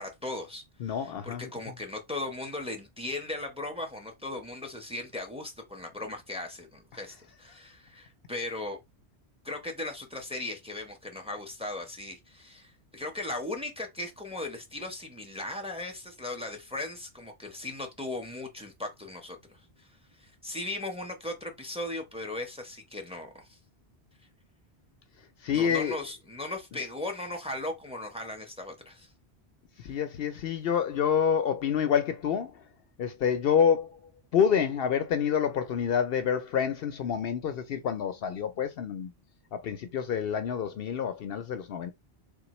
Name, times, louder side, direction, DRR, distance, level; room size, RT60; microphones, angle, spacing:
voice 1, 0.0-8.8 9.4-19.9 20.2-23.6 25.5-29.1 29.8-30.0, left 2 dB, 5° right, 0.9 m, -38 dB
voice 2, 0.8-1.5 25.4-26.0 29.8-32.6 33.0-34.0 34.3-39.1 39.5-41.9, left 7 dB, 65° left, 0.7 m, -27 dB
3.8 x 3.7 x 3.0 m
omnidirectional pair, 1.1 m